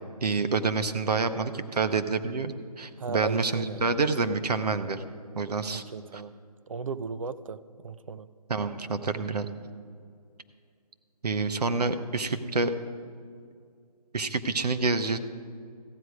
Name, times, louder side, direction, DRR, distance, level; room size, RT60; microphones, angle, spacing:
voice 1, 0.2-5.0 5.3-5.8 6.1-6.2 8.5-9.5 11.2-12.7 14.1-15.2, right 4 dB, 75° right, 9 dB, 0.9 m, -28 dB
voice 2, 3.0-3.9 5.7-8.3, right 4 dB, 55° right, 14 dB, 0.5 m, -36 dB
14.5 x 9.3 x 4.9 m, 2.2 s
hypercardioid pair, 170°, 21 cm